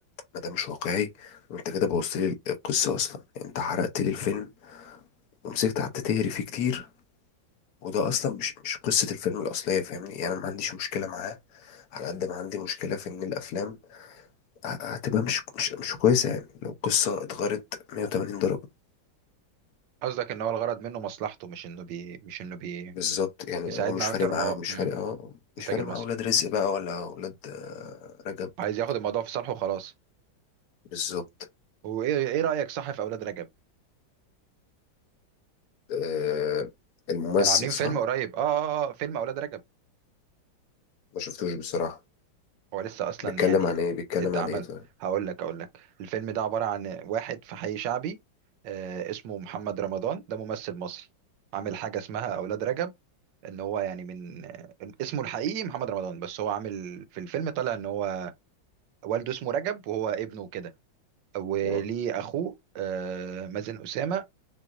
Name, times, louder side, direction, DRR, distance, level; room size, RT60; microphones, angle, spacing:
voice 1, 0.4-5.0 5.4-6.9 7.8-14.3 14.6-17.6 17.9-18.6 22.9-28.5 30.9-31.2 35.9-36.7 37.1-38.0 41.1-42.0 43.4-44.8 61.6-61.8, left 7 dB, 65° left, 1.1 m, -29 dB
voice 2, 20.0-22.9 23.7-24.9 25.7-26.0 28.6-29.9 31.8-33.5 37.4-39.6 42.7-43.7 44.3-44.6 45.0-48.2 48.6-51.1 51.5-52.9 53.4-58.3 59.0-60.7 61.3-64.3, right 9 dB, 70° right, 1.2 m, -31 dB
5.8 x 2.5 x 2.5 m
omnidirectional pair, 2.2 m